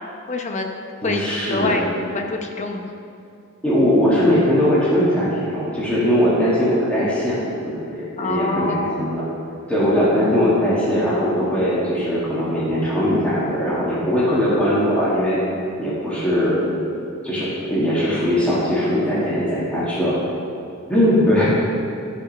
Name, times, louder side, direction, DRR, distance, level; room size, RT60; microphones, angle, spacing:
voice 1, 0.3-1.8 2.1-2.8 8.2-9.0, left 3 dB, 35° left, 3 dB, 0.8 m, -26 dB
voice 2, 1.0-1.8 3.6-7.4 7.7-9.2 9.7-15.4 15.8-16.6 16.9-17.0 17.2-20.2 20.9-21.5, equal, 5° left, -9 dB, 1.8 m, -20 dB
12.0 x 5.3 x 5.4 m, 2.5 s
head